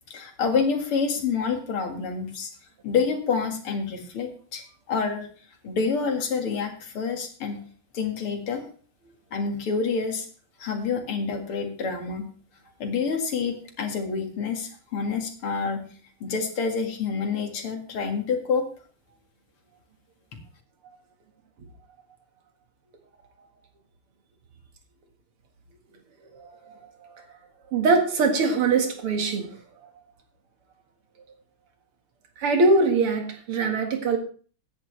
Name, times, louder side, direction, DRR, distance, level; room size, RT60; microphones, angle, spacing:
voice 1, 0.1-2.5 2.8-5.3 5.6-7.6 7.9-8.6 9.3-10.3 10.6-12.3 12.8-15.8 16.2-18.7, left 5 dB, 80° left, 4 dB, 2.8 m, -27 dB
voice 2, 27.7-29.4 32.4-34.2, right 3 dB, 85° right, 4 dB, 2.8 m, -22 dB
16.0 x 10.0 x 3.3 m, 0.42 s
omnidirectional pair, 2.4 m